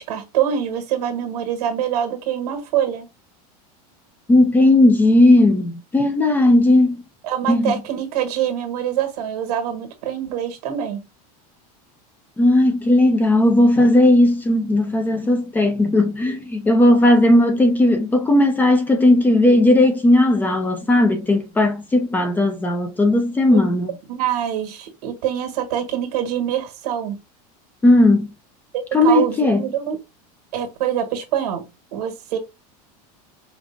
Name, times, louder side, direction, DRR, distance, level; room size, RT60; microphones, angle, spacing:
voice 1, 0.0-3.1 7.2-11.0 23.5-23.6 24.1-27.2 29.0-30.0 30.5-31.6 31.9-32.4, right 10 dB, 85° right, 1.5 m, -24 dB
voice 2, 4.3-7.0 7.5-7.7 12.4-23.9 27.8-28.3 28.9-29.6, left 1 dB, 10° left, 0.5 m, -16 dB
5.1 x 2.5 x 2.5 m
supercardioid pair, 160°, 20 cm